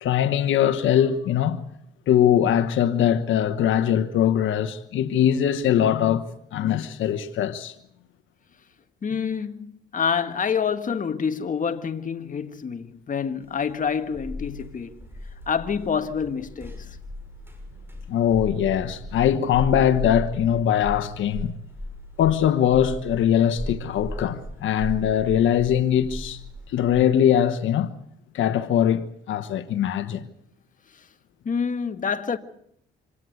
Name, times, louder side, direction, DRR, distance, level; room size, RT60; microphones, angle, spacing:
voice 1, 0.0-1.6 2.1-6.3 6.5-7.7 18.1-21.5 22.2-26.4 26.7-27.9 28.3-30.2, left 10 dB, 75° left, 1.3 m, -21 dB
voice 2, 9.0-15.0 15.5-17.0 30.9-31.1 31.5-32.4, left 6 dB, 40° left, 1.8 m, -27 dB
sound 1, 13.6-27.0, equal, 10° right, 6.6 m, -36 dB
26.0 x 18.0 x 8.0 m
cardioid pair, 90°, 20 cm